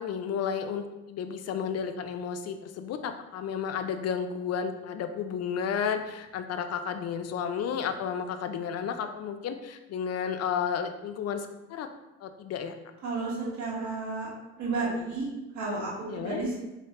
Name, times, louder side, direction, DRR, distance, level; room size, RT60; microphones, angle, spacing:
voice 1, 0.0-11.9 12.2-12.7 16.1-16.4, left 7 dB, 55° left, 7 dB, 0.4 m, -32 dB
voice 2, 13.0-14.3 14.6-15.3 15.5-16.6, right 3 dB, 70° right, -4 dB, 1.3 m, -32 dB
3.3 x 3.2 x 2.8 m, 1.0 s
cardioid pair, 90°, 30 cm